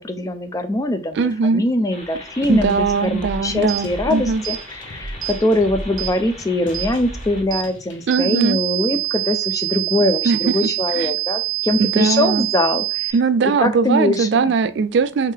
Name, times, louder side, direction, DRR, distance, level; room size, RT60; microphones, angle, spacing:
voice 1, 0.0-1.2 1.5-2.7 3.0-13.1 13.6-14.5, left 1 dB, 20° left, 0.4 m, -22 dB
voice 2, 1.1-1.6 2.5-4.4 8.1-8.6 10.2-10.5 10.9-11.1 11.8-12.4 13.1-15.3, right 5 dB, 65° right, 0.3 m, -19 dB
sound 1, 1.9-7.4, left 1 dB, 35° left, 1.5 m, -40 dB
sound 2, 2.4-8.1, equal, 75° left, 0.8 m, -35 dB
sound 3, 3.7-3.8 4.4-4.6 5.2-5.4 6.0-6.1 6.7-6.9 7.5-7.7 8.1-13.1, right 24 dB, 20° right, 0.8 m, -25 dB
3.5 x 3.2 x 3.3 m
head